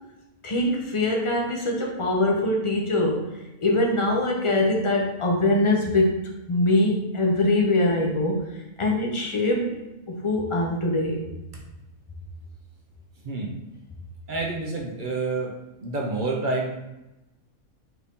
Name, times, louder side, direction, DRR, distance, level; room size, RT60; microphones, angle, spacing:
voice 1, 0.4-3.2 3.6-6.1 6.5-8.4 8.8-9.8 10.1-11.2, left 2 dB, 40° left, 0 dB, 0.4 m, -23 dB
voice 2, 14.3-15.5 15.8-16.8, right 3 dB, 55° right, 0 dB, 0.5 m, -28 dB
4.5 x 2.7 x 3.5 m, 0.96 s
omnidirectional pair, 1.5 m